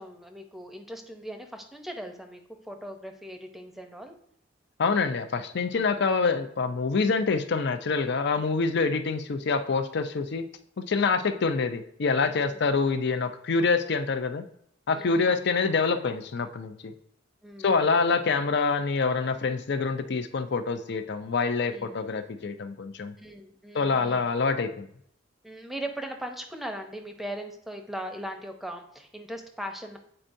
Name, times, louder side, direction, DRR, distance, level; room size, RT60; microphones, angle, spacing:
voice 1, 0.0-4.2 11.0-11.2 12.3-12.7 14.9-15.5 17.4-18.0 21.7-22.0 23.2-24.3 25.4-30.0, right 1 dB, ahead, 5 dB, 0.7 m, -39 dB
voice 2, 4.8-10.4 10.9-14.4 14.9-16.9 17.6-23.1 23.7-24.9, left 4 dB, 60° left, 9 dB, 0.5 m, -26 dB
8.7 x 4.4 x 2.6 m, 0.68 s
head